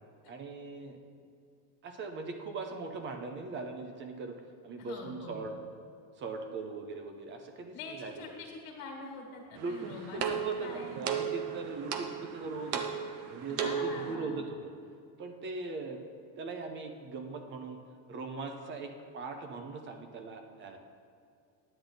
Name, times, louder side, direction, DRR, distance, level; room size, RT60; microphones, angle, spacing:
voice 1, 0.3-1.0 1.8-5.5 6.2-8.3 9.5-13.0 13.3-14.7 15.2-16.0 16.4-17.8 18.1-20.8, right 3 dB, 25° right, 6 dB, 0.6 m, -40 dB
voice 2, 4.8-5.4 7.7-11.0 13.5-14.5, left 4 dB, 65° left, -1 dB, 1.8 m, -45 dB
sound 1, 9.6-14.1, right 7 dB, 70° right, 1.0 m, -35 dB
10.0 x 8.6 x 3.9 m, 2.4 s
cardioid pair, 175°, 45 cm